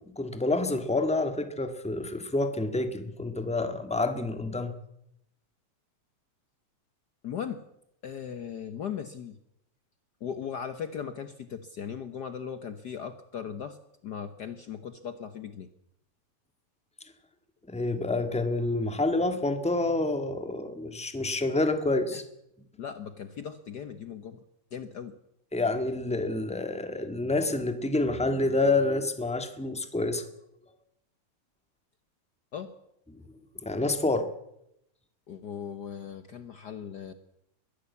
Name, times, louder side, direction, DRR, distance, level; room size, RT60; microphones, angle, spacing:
voice 1, 0.2-4.7 17.7-22.2 25.5-30.3 33.6-34.3, left 2 dB, 5° left, 8 dB, 0.9 m, -28 dB
voice 2, 7.2-7.6 8.0-9.4 10.2-13.8 14.0-15.7 22.1-22.2 22.8-24.4 24.7-25.2 32.5-32.8 35.3-37.1, left 7 dB, 75° left, 10 dB, 0.9 m, -38 dB
22.5 x 15.5 x 8.4 m, 0.80 s
omnidirectional pair, 3.3 m